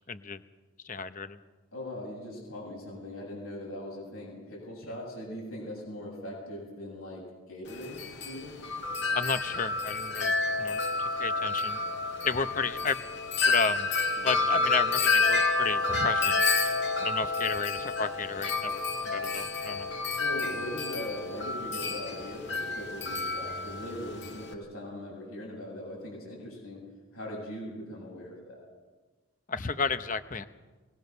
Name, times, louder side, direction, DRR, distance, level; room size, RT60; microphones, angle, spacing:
voice 1, 0.1-0.4 0.8-1.4 9.1-11.8 12.2-13.2 13.4-13.9 14.2-16.4 17.0-19.9 29.5-30.4, left 5 dB, 35° left, 11 dB, 0.9 m, -32 dB
voice 2, 1.7-8.6 14.2-14.5 20.1-26.8 27.1-28.6, left 1 dB, 80° left, -3 dB, 7.6 m, -40 dB
Wind chime, 7.7-24.5, left 3 dB, 55° left, 1.9 m, -29 dB
22.0 x 19.5 x 6.8 m, 1.3 s
head